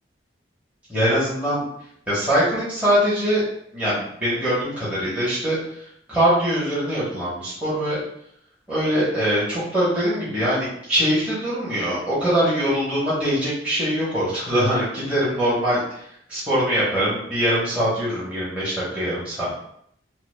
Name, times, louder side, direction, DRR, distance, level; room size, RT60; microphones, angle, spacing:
voice 1, 0.9-1.6 2.1-3.4 3.7-8.0 8.7-19.6, equal, 10° right, -11 dB, 1.0 m, -23 dB
5.5 x 2.1 x 2.2 m, 0.70 s
head